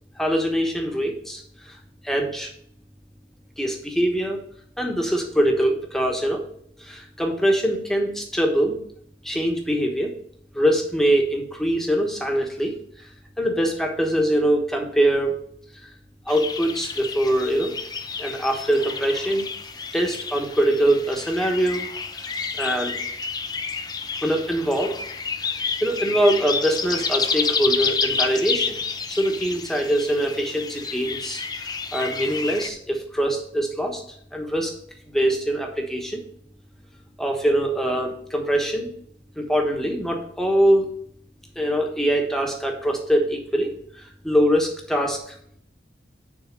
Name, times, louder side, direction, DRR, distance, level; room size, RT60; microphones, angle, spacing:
voice 1, 0.2-1.8 2.0-2.5 3.6-4.4 4.8-6.4 6.8-8.8 9.2-10.1 10.5-13.1 13.4-15.3 15.8-15.9 16.3-17.7 18.2-19.5 19.9-21.9 22.1-23.0 24.2-25.0 25.4-28.8 29.1-34.0 34.3-34.8 35.1-36.2 37.2-38.9 39.4-40.9 41.5-45.3, right 1 dB, ahead, 1 dB, 1.2 m, -23 dB
sound 1, 16.3-32.7, left 5 dB, 20° left, 0.6 m, -30 dB
10.0 x 4.1 x 5.2 m, 0.65 s
head